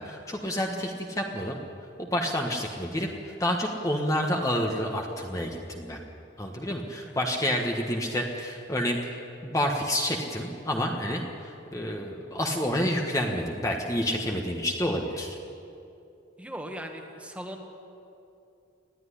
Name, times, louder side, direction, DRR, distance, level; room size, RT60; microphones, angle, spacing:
voice 1, 0.0-1.6 2.0-6.0 6.4-15.4, equal, 15° left, 1 dB, 1.4 m, -29 dB
voice 2, 16.4-17.6, equal, 5° right, 3 dB, 1.7 m, -39 dB
20.5 x 13.5 x 9.9 m, 2.7 s
head